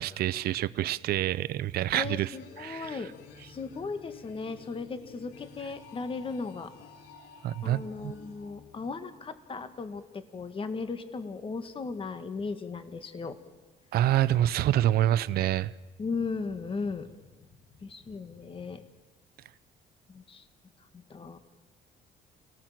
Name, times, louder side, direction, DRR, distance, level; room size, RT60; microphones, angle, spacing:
voice 1, 0.0-3.0 7.4-8.1 13.9-15.7, right 13 dB, 65° right, 16 dB, 0.7 m, -27 dB
voice 2, 1.9-3.1 3.5-6.7 7.6-13.4 16.0-17.1 17.8-18.8 20.1-20.4 20.9-21.4, left 4 dB, 30° left, 9 dB, 2.1 m, -36 dB
sound 1, 2.3-9.3, left 5 dB, 80° left, 2.9 m, -52 dB
29.5 x 18.0 x 7.7 m, 1.3 s
cardioid pair, 110°, 17 cm